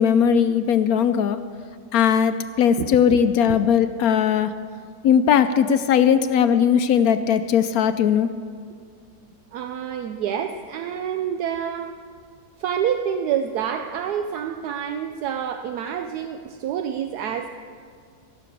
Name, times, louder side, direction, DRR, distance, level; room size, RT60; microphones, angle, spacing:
voice 1, 0.0-1.4 1.9-4.5 5.0-8.3, left 8 dB, 70° left, 11 dB, 1.0 m, -19 dB
voice 2, 2.8-3.2 3.5-3.6 9.5-11.9 12.6-17.5, right 8 dB, 75° right, 6 dB, 1.1 m, -27 dB
16.5 x 6.6 x 8.3 m, 2.2 s
omnidirectional pair, 1.7 m